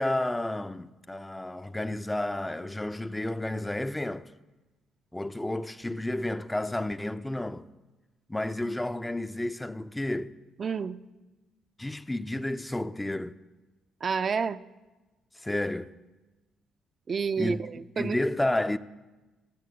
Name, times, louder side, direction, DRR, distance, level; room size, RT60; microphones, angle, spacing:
voice 1, 0.0-4.3 5.1-7.7 8.3-10.4 11.8-13.4 15.4-15.9 17.4-17.6 18.0-18.8, left 1 dB, 10° left, 0.5 m, -31 dB
voice 2, 10.6-11.0 14.0-14.6 17.1-18.2, right 6 dB, 45° right, 0.5 m, -29 dB
16.0 x 6.8 x 8.7 m
cardioid pair, 90°, 0 cm